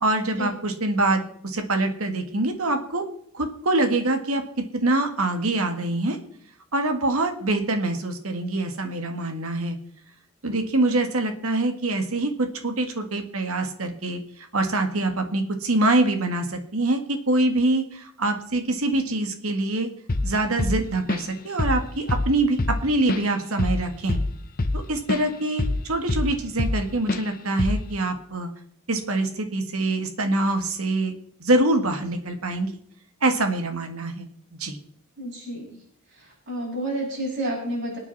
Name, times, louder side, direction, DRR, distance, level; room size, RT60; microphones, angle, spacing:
voice 1, 0.0-3.0 3.3-4.4 4.8-6.2 6.7-9.8 10.4-19.9 20.2-24.2 24.7-28.5 28.9-31.2 31.4-32.7 33.2-34.3 34.6-34.8, right 2 dB, 85° right, 6 dB, 2.0 m, -24 dB
Drum kit / Drum, 20.1-20.3 20.6-21.3 21.6-21.8 22.1-25.3 25.6-26.8 27.1-27.3 27.6-27.9, left 2 dB, 45° left, 0.9 m, -25 dB
voice 2, 35.2-35.8 36.1-38.0, right 1 dB, 50° right, -6 dB, 6.7 m, -30 dB
27.0 x 9.1 x 4.2 m, 0.63 s
head